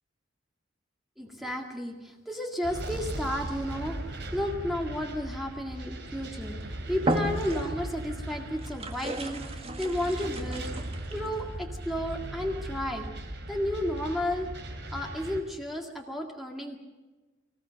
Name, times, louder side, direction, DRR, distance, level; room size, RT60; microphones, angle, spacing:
voice 1, 1.2-10.7 11.1-13.1 13.5-14.5 14.9-16.8, equal, ahead, 1 dB, 2.0 m, -33 dB
sound 1, 2.6-15.4, right 1 dB, 60° right, 3.4 m, -38 dB
sound 2, 6.3-6.5 7.0-8.0 8.6-11.3, right 1 dB, 30° right, 1.8 m, -34 dB
25.0 x 15.5 x 7.6 m, 1.2 s
head